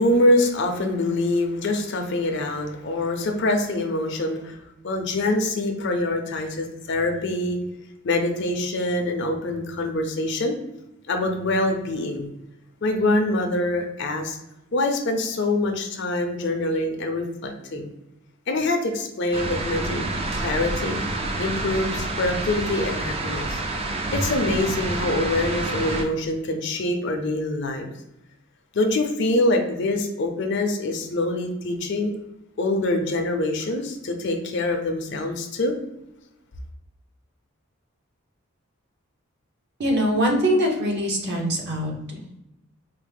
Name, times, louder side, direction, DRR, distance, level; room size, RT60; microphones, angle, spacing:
voice 1, 0.0-4.6 4.8-7.6 8.0-10.6 11.1-12.3 12.8-14.4 14.7-17.9 18.5-20.1 20.4-21.0 21.4-23.6 24.1-27.9 28.7-32.1 32.6-35.8, left 2 dB, 55° left, 4 dB, 0.5 m, -24 dB
sound 1, 19.3-26.0, right 2 dB, 30° right, 0.4 m, -28 dB
voice 2, 39.8-42.4, equal, 55° right, 0 dB, 0.8 m, -23 dB
4.0 x 2.0 x 3.3 m, 0.91 s
head